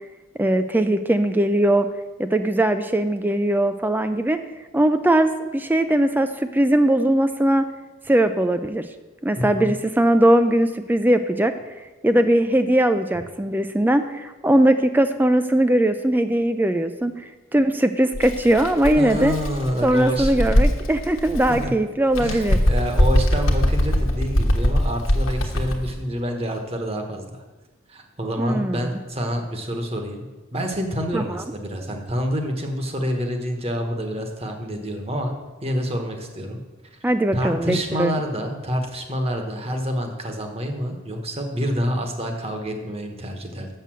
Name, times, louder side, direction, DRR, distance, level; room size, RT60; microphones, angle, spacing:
voice 1, 0.4-1.9 2.2-4.4 4.7-7.7 8.1-8.8 9.2-11.5 12.0-19.3 19.8-22.6 28.4-28.9 31.1-31.4 37.0-38.1, right 1 dB, 10° right, 9 dB, 0.3 m, -20 dB
voice 2, 9.4-9.7 19.0-20.4 21.5-21.7 22.2-27.4 27.9-30.3 30.5-35.3 35.6-36.6 37.3-43.7, equal, 30° right, 4 dB, 1.1 m, -27 dB
Bird, 18.1-21.7 22.1-25.9, equal, 75° left, 1.2 m, -21 dB
6.7 x 6.6 x 7.5 m, 1.2 s
head